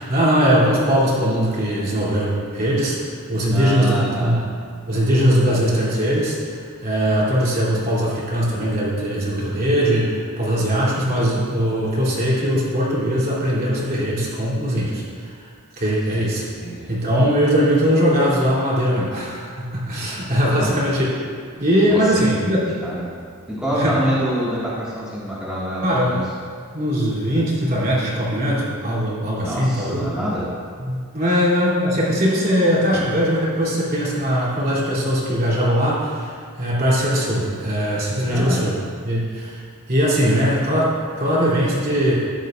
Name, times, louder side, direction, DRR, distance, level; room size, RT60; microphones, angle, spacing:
voice 1, 0.0-4.4 4.9-6.4 6.8-15.3 15.8-16.4 16.9-21.1 21.6-22.6 23.7-24.1 25.8-26.2 26.7-30.1 30.8-38.7 39.0-39.6 39.9-42.1, equal, 40° right, -7 dB, 2.9 m, -20 dB
voice 2, 3.5-4.4 16.1-16.3 16.6-16.9 20.6-20.8 21.9-23.2 23.5-26.2 29.4-30.4 32.9-33.0 38.2-38.6, equal, 5° right, -10 dB, 1.8 m, -27 dB
14.0 x 10.5 x 2.5 m, 2.1 s
head